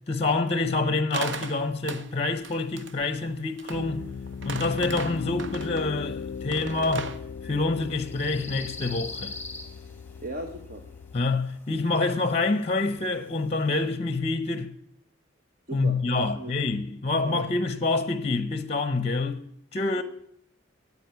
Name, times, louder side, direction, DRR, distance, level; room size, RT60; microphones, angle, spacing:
voice 1, 0.1-4.1 4.4-7.1 7.4-9.4 11.1-14.7 15.7-19.4 19.7-20.0, left 3 dB, 30° left, 0.7 m, -27 dB
sound 1, 1.1-2.1 2.4-3.9 4.3-5.9 6.5-7.2, right 4 dB, 65° right, 0.8 m, -37 dB
sound 2, 3.1-13.9, left 3 dB, 10° left, 1.1 m, -46 dB
Piano, 3.7-11.2, left 6 dB, 80° left, 0.4 m, -38 dB
voice 2, 10.2-10.8 15.7-16.7 17.2-17.4 19.9-20.0, right 1 dB, 45° right, 1.1 m, -38 dB
9.2 x 8.3 x 9.3 m
head